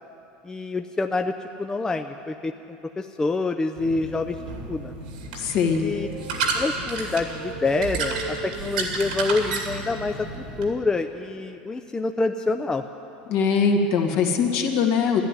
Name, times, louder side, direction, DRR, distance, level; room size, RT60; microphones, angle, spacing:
voice 1, 0.4-1.3 1.6-2.5 3.0-4.4 4.7-4.9 5.8-6.1 6.5-10.3 10.6-12.8, left 3 dB, 15° left, 6 dB, 0.6 m, -26 dB
sound 1, 3.8-10.7, right 4 dB, 90° right, 2.3 m, -31 dB
voice 2, 5.3-5.9 13.3-15.2, left 5 dB, 60° left, 2 dB, 2.1 m, -21 dB
13.5 x 11.0 x 9.8 m, 2.8 s
supercardioid pair, 100°, 4 cm